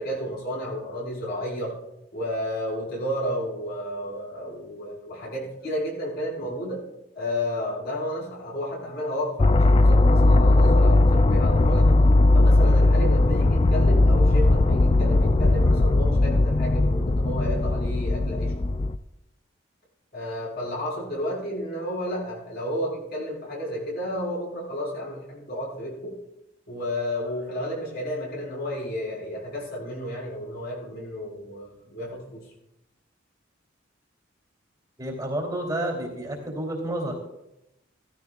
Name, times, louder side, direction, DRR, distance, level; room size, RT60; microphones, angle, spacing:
voice 1, 0.0-1.7 2.1-6.8 7.1-12.0 12.3-18.5 20.1-26.2 26.7-32.4, equal, 60° left, -3 dB, 5.5 m, -32 dB
sound 1, 9.4-19.0, left 2 dB, 30° left, 0.4 m, -18 dB
voice 2, 35.0-37.2, right 1 dB, 20° right, -1 dB, 2.9 m, -30 dB
16.5 x 14.5 x 2.4 m, 0.87 s
head